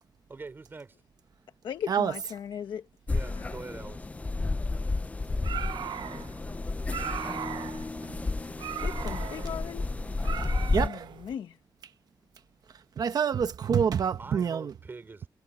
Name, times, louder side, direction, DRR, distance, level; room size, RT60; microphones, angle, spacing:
voice 1, 0.3-1.0 3.1-4.1 14.2-15.3, right 3 dB, 25° right, 4.6 m, -44 dB
voice 2, 1.6-2.9 3.3-3.6 8.7-9.9 10.7-11.6, left 8 dB, 80° left, 1.2 m, -38 dB
sound 1, 3.1-10.9, left 3 dB, 20° left, 0.6 m, -31 dB
sound 2, 5.3-11.4, right 9 dB, 75° right, 0.9 m, -39 dB
voice 3, 10.7-11.1 13.0-14.7, right 7 dB, 55° right, 1.1 m, -26 dB
wide cardioid pair, 155°, 8 cm